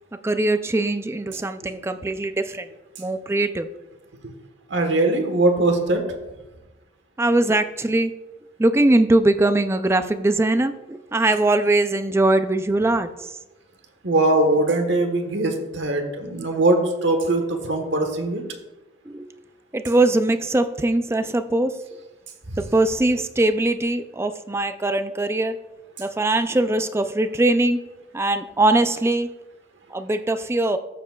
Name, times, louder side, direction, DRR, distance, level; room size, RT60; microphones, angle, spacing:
voice 1, 0.2-2.7 3.0-3.7 7.2-8.1 8.6-13.3 19.1-19.3 19.7-21.8 22.6-25.6 26.0-27.8 28.1-29.3 29.9-30.8, right 2 dB, 15° right, 10 dB, 0.3 m, -21 dB
voice 2, 4.7-6.0 14.0-18.4, right 2 dB, 70° right, 5 dB, 1.2 m, -21 dB
14.0 x 7.3 x 2.3 m, 1.1 s
head